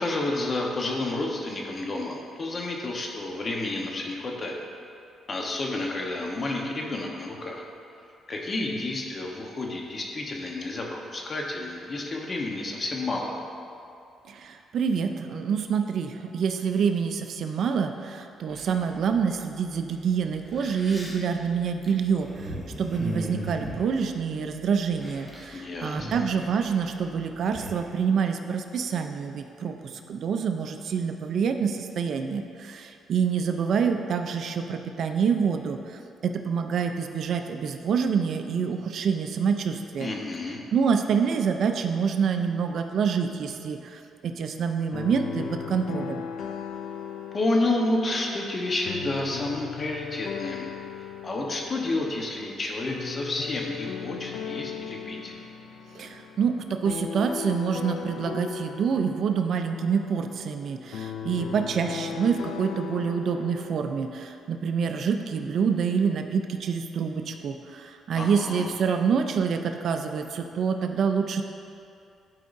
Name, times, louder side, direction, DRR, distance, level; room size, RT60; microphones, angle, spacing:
voice 1, 0.0-4.6 5.3-7.6 8.3-13.4 25.5-26.2 40.0-40.6 47.3-50.7 51.2-55.3 68.1-68.7, left 2 dB, 40° left, 0 dB, 1.0 m, -30 dB
voice 2, 14.3-22.3 22.8-29.8 30.1-35.8 36.2-40.1 40.7-46.2 55.9-71.4, right 6 dB, 65° right, 6 dB, 0.5 m, -27 dB
sound 1, 18.5-19.1 19.9-20.0 20.4-24.6 24.9-25.5 25.8-27.9, equal, 5° left, 1.4 m, -37 dB
sound 2, 44.9-63.8, left 8 dB, 80° left, 0.4 m, -37 dB
12.0 x 4.7 x 2.6 m, 2.5 s
cardioid pair, 90°, 0 cm